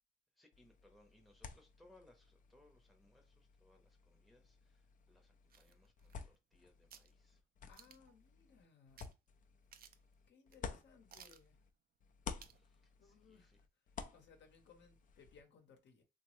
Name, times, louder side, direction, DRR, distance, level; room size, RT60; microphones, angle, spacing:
voice 1, 0.4-7.4 12.3-13.6, left 1 dB, ahead, 0.7 m, -69 dB
sound 1, 0.5-11.7 12.0-15.4, left 6 dB, 40° left, 0.4 m, -53 dB
sound 2, 5.5-6.5 6.9-7.1 7.7-8.2 9.0-9.1 9.4-9.5 9.7-10.1 10.5-10.6 11.1-11.5 12.4-12.6 13.0-13.1, right 8 dB, 50° right, 0.4 m, -59 dB
voice 2, 7.7-9.1 10.3-11.6 13.0-13.5 14.1-16.0, left 6 dB, 65° left, 0.8 m, -64 dB
3.0 x 2.1 x 3.1 m
cardioid pair, 90°, 20 cm